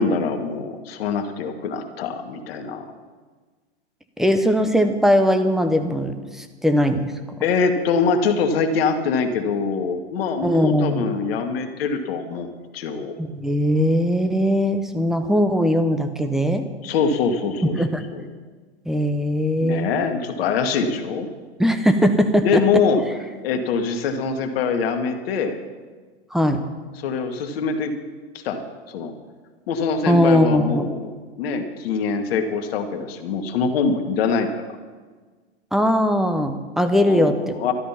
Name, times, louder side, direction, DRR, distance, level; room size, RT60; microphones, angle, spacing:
voice 1, 0.0-2.9 7.4-12.5 12.7-13.1 16.8-17.7 18.1-18.2 19.6-21.3 22.4-23.0 23.4-25.6 27.0-27.9 28.4-28.6 28.9-29.1 29.7-34.6 37.0-37.7, left 5 dB, 65° left, 5 dB, 2.0 m, -23 dB
voice 2, 4.2-7.1 10.4-11.1 13.2-16.7 17.7-18.1 18.9-19.9 21.6-22.6 26.3-26.6 30.1-30.8 35.7-37.5, equal, ahead, 8 dB, 0.9 m, -20 dB
13.0 x 12.0 x 5.9 m, 1.4 s
hypercardioid pair, 125°, 32 cm